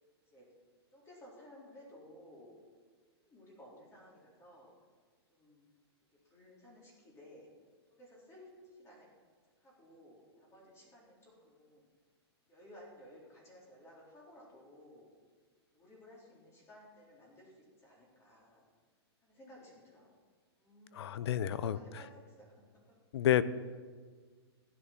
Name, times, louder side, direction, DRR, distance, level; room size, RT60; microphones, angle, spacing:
voice 1, 0.9-2.6 3.2-4.8 5.3-5.6 6.2-7.5 7.9-9.1 9.6-11.9 12.5-15.1 15.7-18.7 19.2-20.1 20.6-21.1 21.6-22.5 22.9-23.0, equal, 20° left, -4 dB, 3.9 m, -57 dB
voice 2, 20.9-21.8 23.1-23.4, left 11 dB, 70° left, 17 dB, 0.7 m, -29 dB
14.5 x 10.0 x 5.9 m, 1.5 s
hypercardioid pair, 135°, 14 cm